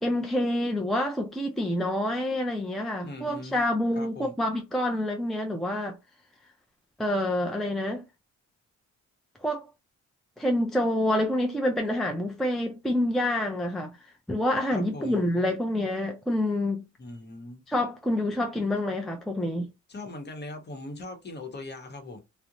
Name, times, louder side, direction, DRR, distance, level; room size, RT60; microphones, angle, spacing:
voice 1, 0.0-6.0 7.0-8.0 9.4-9.7 10.4-13.9 14.3-16.8 17.7-19.7, left 1 dB, ahead, 0.4 m, -27 dB
voice 2, 3.0-3.6 4.0-4.3 14.7-15.2 17.0-17.6 19.9-22.2, left 2 dB, 35° left, 0.9 m, -40 dB
2.4 x 2.1 x 2.8 m
cardioid pair, 90°, 30 cm